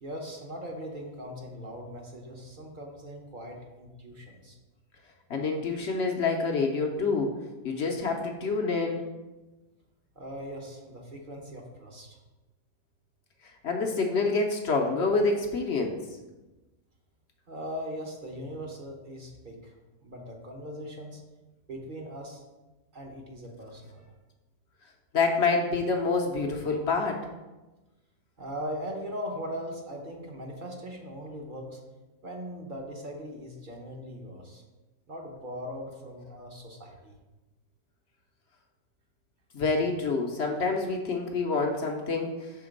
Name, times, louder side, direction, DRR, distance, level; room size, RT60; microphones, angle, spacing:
voice 1, 0.0-4.6 10.2-12.2 17.5-19.7 20.0-21.2 21.7-22.4 22.9-24.1 25.5-25.6 26.6-26.8 28.4-31.8 32.2-34.6 35.1-37.2, equal, 40° right, 0 dB, 0.9 m, -40 dB
voice 2, 5.3-7.3 7.6-9.1 13.6-16.0 25.1-27.3 39.5-42.5, left 4 dB, 60° left, 2 dB, 0.8 m, -27 dB
5.8 x 3.8 x 5.1 m, 1.1 s
omnidirectional pair, 1.6 m